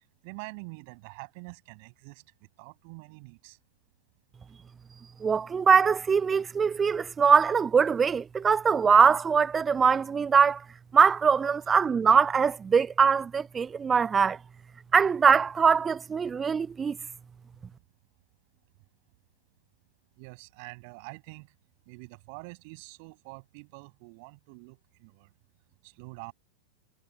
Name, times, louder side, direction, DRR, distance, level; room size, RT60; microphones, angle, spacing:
voice 1, 0.2-2.2 2.6-3.6 20.2-21.5 21.9-25.3 25.8-26.3, right 32 dB, 45° right, 6.7 m, -45 dB
voice 2, 5.2-10.6 10.9-14.4 14.9-17.0, right 6 dB, 20° right, 0.7 m, -22 dB
figure-of-eight pair, 90°, 0 cm